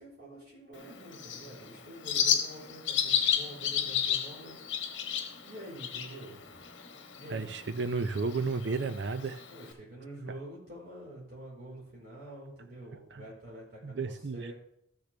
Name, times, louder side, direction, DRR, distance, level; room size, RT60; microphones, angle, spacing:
voice 1, 0.0-4.6 5.4-6.6 7.1-7.5 9.5-14.5, right 1 dB, 50° right, -5 dB, 4.3 m, -47 dB
Bird, 0.7-9.7, left 8 dB, 75° left, 1.2 m, -33 dB
voice 2, 7.3-9.4 13.1-13.3 13.8-14.5, right 4 dB, 70° right, 12 dB, 0.6 m, -33 dB
13.5 x 6.7 x 3.4 m, 0.72 s
head